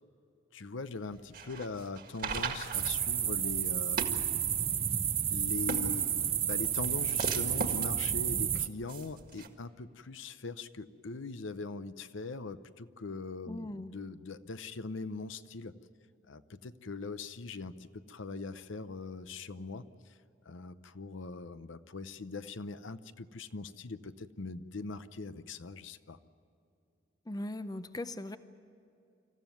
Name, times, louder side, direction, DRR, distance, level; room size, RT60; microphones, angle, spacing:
voice 1, 0.5-4.1 5.3-15.7 16.3-20.2 20.4-26.2, left 3 dB, 80° left, 12 dB, 0.8 m, -41 dB
sound 1, 1.1-9.5, right 4 dB, 50° right, 1.8 m, -40 dB
sound 2, 2.7-8.7, right 9 dB, 30° right, 0.7 m, -31 dB
voice 2, 13.5-13.9 27.3-28.4, left 1 dB, 20° left, 11 dB, 0.6 m, -39 dB
26.5 x 14.5 x 9.2 m, 2.6 s
head